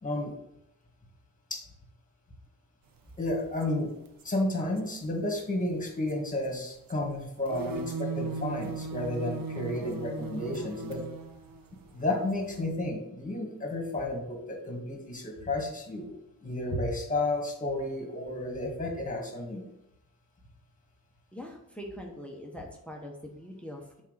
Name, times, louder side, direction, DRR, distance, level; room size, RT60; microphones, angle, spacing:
voice 1, 0.0-0.3 1.5-1.6 3.2-3.9 4.2-11.0 11.9-16.2 16.4-19.6, left 1 dB, 25° left, 1 dB, 1.8 m, -32 dB
sound 1, 3.6-3.7 4.1-4.2 4.6-4.8 6.1-6.6 6.9-7.0 7.2-12.6, right 4 dB, 90° right, 0.8 m, -37 dB
voice 2, 21.3-24.0, equal, 5° left, 0 dB, 1.0 m, -43 dB
7.3 x 4.2 x 4.1 m, 0.82 s
wide cardioid pair, 120°, 33 cm